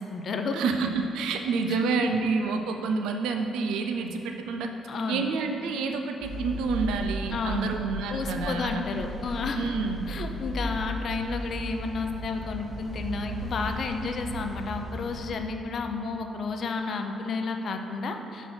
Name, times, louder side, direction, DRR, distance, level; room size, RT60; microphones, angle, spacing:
voice 1, 0.0-0.7 1.7-2.2 4.9-5.3 7.3-7.7 8.1-9.8 10.1-18.5, left 4 dB, 55° left, 5 dB, 0.5 m, -31 dB
voice 2, 0.5-4.7 5.1-8.8 9.6-10.1, right 4 dB, 90° right, 5 dB, 0.4 m, -28 dB
sound 1, 6.2-15.2, left 1 dB, 5° left, 1.1 m, -36 dB
5.5 x 4.0 x 5.9 m, 2.9 s
cardioid pair, 90°, 0 cm